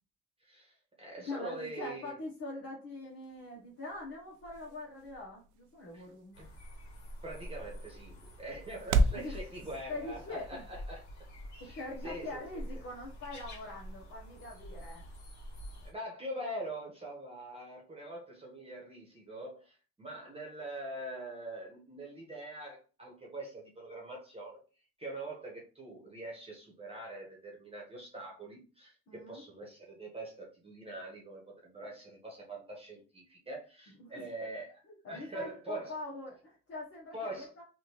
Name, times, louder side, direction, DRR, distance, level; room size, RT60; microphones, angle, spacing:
voice 1, 0.4-2.1 5.9-6.0 6.4-6.5 7.2-11.3 11.6-11.8 12.0-12.6 15.8-24.6 25.0-34.8 35.1-36.0 37.1-37.5, right 1 dB, 20° right, -2 dB, 1.2 m, -44 dB
voice 2, 1.2-6.4 9.1-9.4 9.9-10.6 11.6-15.0 29.1-29.4 34.0-34.3 34.9-37.6, left 2 dB, 50° left, -4 dB, 1.2 m, -43 dB
sound 1, 3.0-9.3, right 2 dB, 80° right, 0.5 m, -36 dB
sound 2, 6.3-15.9, equal, 70° left, 1.3 m, -47 dB
3.5 x 2.6 x 3.0 m, 0.35 s
cardioid pair, 90°, 30 cm